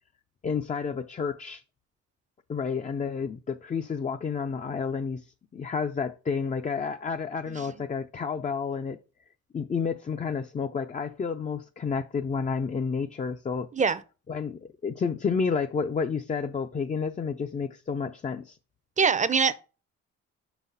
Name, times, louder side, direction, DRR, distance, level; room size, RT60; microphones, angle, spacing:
voice 1, 0.4-1.6 2.5-5.3 5.5-9.0 9.5-13.7 14.3-18.6, left 5 dB, 25° left, 0.4 m, -30 dB
voice 2, 7.5-7.9 13.7-14.0 19.0-19.5, right 5 dB, 25° right, 0.6 m, -24 dB
5.6 x 4.1 x 5.4 m
cardioid pair, 90°, 30 cm